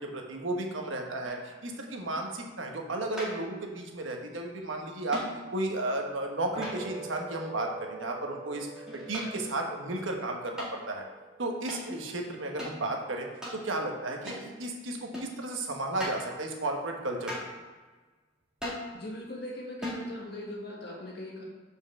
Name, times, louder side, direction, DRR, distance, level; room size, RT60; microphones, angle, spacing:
voice 1, 0.0-5.2 5.5-11.0 11.4-13.3 13.6-17.3, right 2 dB, 90° right, 2 dB, 1.2 m, -33 dB
sound 1, 1.2-1.6 3.2-3.6 5.1-5.5 6.6-7.1 8.9-9.6 10.6-10.8 11.7-11.9 12.6-12.8 13.4-13.6 14.3-14.5 15.1-15.4 16.0-16.3 17.3-17.6 18.6-18.9 19.8-20.1, equal, 5° right, 1.7 m, -39 dB
sound 2, 6.6-13.1, right 2 dB, 35° right, 1.3 m, -45 dB
voice 2, 18.9-21.4, left 1 dB, 55° left, -2 dB, 1.7 m, -40 dB
5.5 x 4.8 x 6.4 m, 1.3 s
head